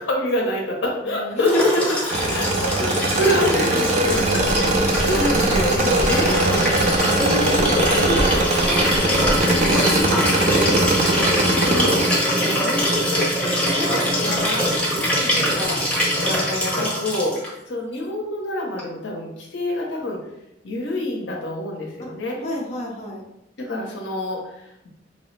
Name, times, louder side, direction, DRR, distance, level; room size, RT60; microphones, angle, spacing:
voice 1, 0.0-1.7 2.3-6.6 7.5-8.4 9.9-10.8 11.3-12.0 12.3-14.7 15.3-17.4 17.7-20.2 20.6-22.4 23.6-24.9, left 1 dB, 70° left, 0 dB, 0.8 m, -27 dB
voice 2, 1.0-1.8 2.7-2.9 5.8-6.7 7.0-9.9 15.1-15.5 22.4-23.2, left 1 dB, 35° left, -3 dB, 0.7 m, -29 dB
Liquid, 1.4-17.5 18.8-18.9, equal, 5° left, 0.9 m, -23 dB
sound 1, 2.1-12.1, right 2 dB, 40° right, 0.4 m, -22 dB
Writing, 4.0-10.0, equal, 90° right, 0.9 m, -30 dB
4.2 x 2.0 x 3.2 m, 0.84 s
head